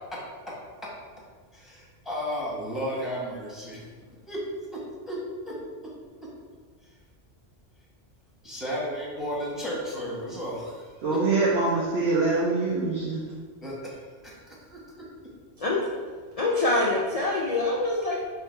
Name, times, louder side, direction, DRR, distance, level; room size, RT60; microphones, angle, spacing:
voice 1, 1.5-3.9 4.3-4.4 4.7-4.8 5.1-5.2 5.5-5.6 8.4-11.5 13.6-14.8, equal, ahead, -5 dB, 0.9 m, -34 dB
voice 2, 11.0-13.2, right 3 dB, 60° right, -6 dB, 0.9 m, -24 dB
voice 3, 16.4-18.2, left 2 dB, 50° left, -3 dB, 0.4 m, -25 dB
3.4 x 3.2 x 4.3 m, 1.5 s
omnidirectional pair, 1.3 m